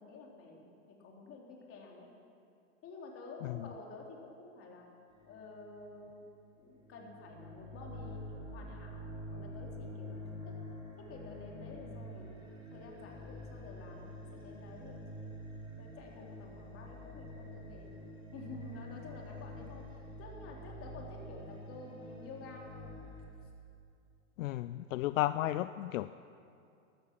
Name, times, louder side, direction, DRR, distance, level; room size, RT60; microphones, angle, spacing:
voice 1, 0.0-2.1 2.8-4.9 5.3-6.3 6.6-10.2 10.5-10.6 11.0-12.4 12.7-15.3 15.8-17.9 18.3-22.8, left 3 dB, 35° left, -1 dB, 3.3 m, -50 dB
sound 1, 5.1-6.5 6.8-23.3, equal, 10° right, 3.7 m, -47 dB
voice 2, 24.4-26.1, left 15 dB, 75° left, 13 dB, 0.5 m, -33 dB
14.0 x 13.0 x 7.4 m, 2.5 s
hypercardioid pair, 120°, 39 cm